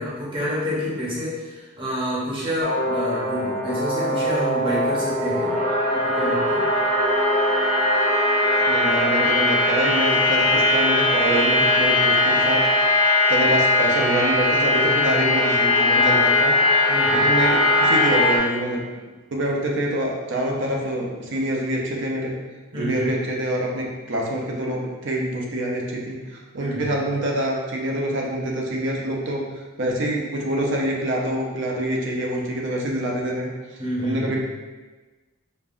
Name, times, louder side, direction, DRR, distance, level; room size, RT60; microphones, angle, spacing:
voice 1, 0.0-5.5 5.9-6.6 16.9-17.3 22.7-23.1 26.6-26.9 33.8-34.4, equal, 25° right, -7 dB, 0.9 m, -28 dB
sound 1, 2.6-18.4, left 2 dB, 90° left, 1.1 m, -20 dB
voice 2, 8.6-12.7 12.9-16.9 17.1-18.9 19.3-22.3 22.7-29.4 29.8-33.5 34.0-34.4, right 1 dB, 60° right, -2 dB, 0.6 m, -26 dB
5.2 x 2.3 x 2.5 m, 1.3 s
head